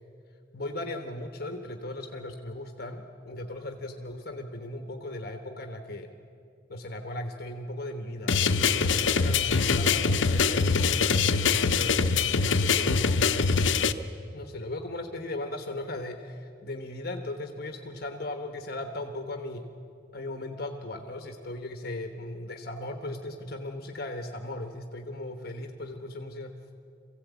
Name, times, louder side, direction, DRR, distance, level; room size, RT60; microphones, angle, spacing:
voice 1, 0.5-6.1 6.7-13.2 14.3-19.7 20.1-26.5, left 1 dB, 55° left, 5 dB, 1.2 m, -37 dB
sound 1, 8.3-13.9, left 5 dB, 90° left, 0.7 m, -24 dB
23.0 x 16.0 x 8.3 m, 2.5 s
head